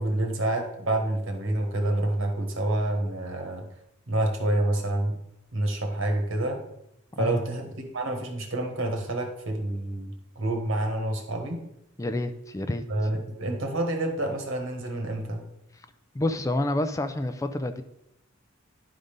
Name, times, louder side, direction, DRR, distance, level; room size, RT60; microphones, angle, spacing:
voice 1, 0.0-3.6 4.1-5.2 5.5-6.6 7.2-11.6 12.9-15.4, right 1 dB, 70° right, 5 dB, 1.5 m, -28 dB
voice 2, 12.0-12.8 16.1-17.8, left 1 dB, 15° left, 9 dB, 0.4 m, -28 dB
11.0 x 3.9 x 5.2 m, 0.82 s
head